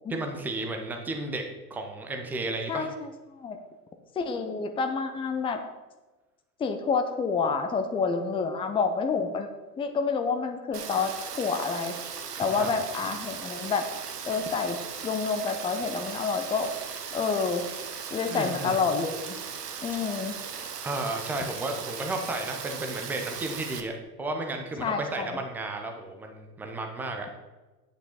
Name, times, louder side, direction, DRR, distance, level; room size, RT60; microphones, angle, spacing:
voice 1, 0.1-1.4 1.7-2.9 12.6-12.7 18.3-18.8 20.8-27.3, right 2 dB, 5° right, 3 dB, 0.3 m, -33 dB
voice 2, 2.7-3.6 4.2-5.6 6.6-9.5 9.8-11.1 11.4-11.9 12.4-13.8 14.3-14.8 15.0-16.7 17.1-17.7 18.1-19.3 19.8-20.4 24.8-25.4, left 5 dB, 10° left, 6 dB, 0.7 m, -28 dB
Rain, 10.7-23.8, right 6 dB, 70° right, 1.2 m, -38 dB
9.0 x 8.0 x 4.3 m, 1.2 s
figure-of-eight pair, 90°, 49 cm